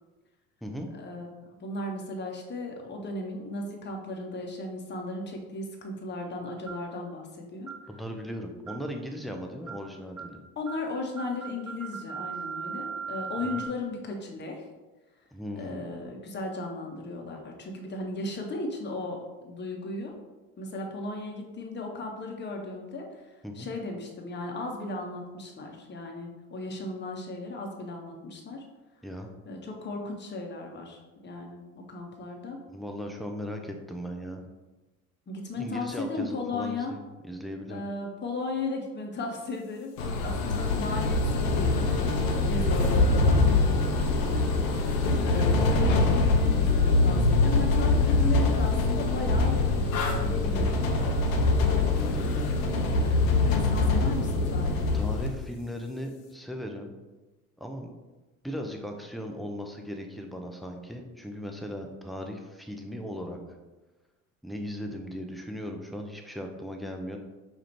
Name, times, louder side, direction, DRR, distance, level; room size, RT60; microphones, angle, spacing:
voice 1, 1.0-1.3 1.6-7.7 10.6-14.7 15.6-20.2 20.6-23.1 23.5-28.6 29.5-32.6 35.3-36.9 37.7-41.9 42.3-43.6 45.2-50.8 53.7-54.8, left 2 dB, 25° left, 1 dB, 1.0 m, -36 dB
sound 1, 6.7-6.9 7.7-7.9 8.7-8.9 9.7-9.9 10.2-10.4 10.7-10.9 11.2-13.7, right 6 dB, 90° right, 0.7 m, -38 dB
voice 2, 7.9-10.4 13.4-13.6 15.3-15.9 23.4-23.7 29.0-29.3 32.7-34.4 35.5-37.8 44.2-44.5 51.9-52.3 54.9-56.9 57.6-57.9 58.4-63.4 64.4-67.2, equal, ahead, 2 dB, 0.6 m, -37 dB
sound 2, 40.0-55.3, left 3 dB, 70° left, 0.7 m, -24 dB
4.9 x 2.4 x 4.4 m, 1.2 s
figure-of-eight pair, 60°, 42 cm